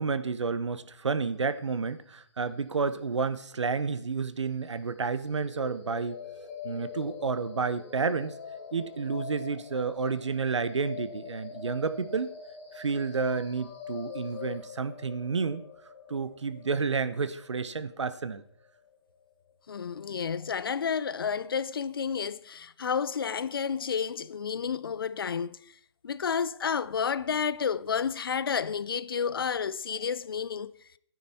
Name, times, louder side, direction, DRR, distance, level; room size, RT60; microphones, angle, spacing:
voice 1, 0.0-6.2 6.6-8.3 8.7-12.3 12.7-15.6 16.1-18.4, right 4 dB, 80° right, 0.9 m, -30 dB
sound 1, 5.3-19.3, left 6 dB, 15° left, 3.4 m, -44 dB
voice 2, 19.7-25.6 26.0-30.7, left 6 dB, 50° left, 0.5 m, -31 dB
13.0 x 9.4 x 4.2 m
hypercardioid pair, 165°, 15 cm